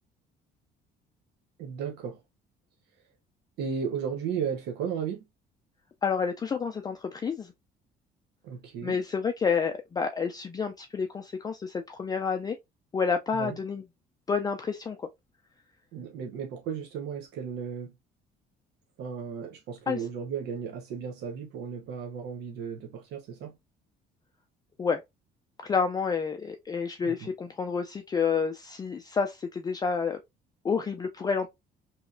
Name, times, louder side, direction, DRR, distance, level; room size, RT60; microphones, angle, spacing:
voice 1, 1.6-2.2 3.6-5.2 8.4-9.0 13.3-13.6 15.9-17.9 19.0-23.6 27.0-27.3, right 7 dB, 75° right, 0.8 m, -35 dB
voice 2, 6.0-7.5 8.8-12.6 12.9-13.8 14.3-15.1 19.9-20.0 24.8-25.0 25.6-30.2 30.6-31.5, left 5 dB, 25° left, 0.4 m, -29 dB
3.1 x 2.8 x 2.5 m
cardioid pair, 110°, 17 cm